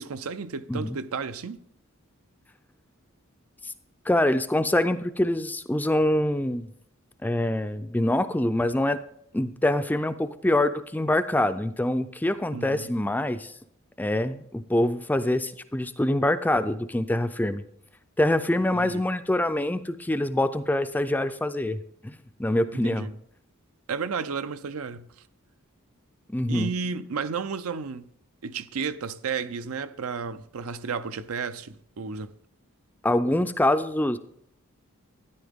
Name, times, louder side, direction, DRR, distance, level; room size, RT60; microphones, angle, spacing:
voice 1, 0.0-1.6 12.5-12.9 18.7-19.0 22.7-23.1 23.9-25.1 26.5-28.1 28.4-32.3, right 5 dB, 80° right, 0.6 m, -32 dB
voice 2, 4.1-6.7 7.2-9.0 9.3-13.5 14.0-17.6 18.2-21.8 22.0-22.1 22.4-23.1 26.3-26.7 33.0-34.2, left 1 dB, 10° left, 0.4 m, -25 dB
13.0 x 10.0 x 3.6 m
head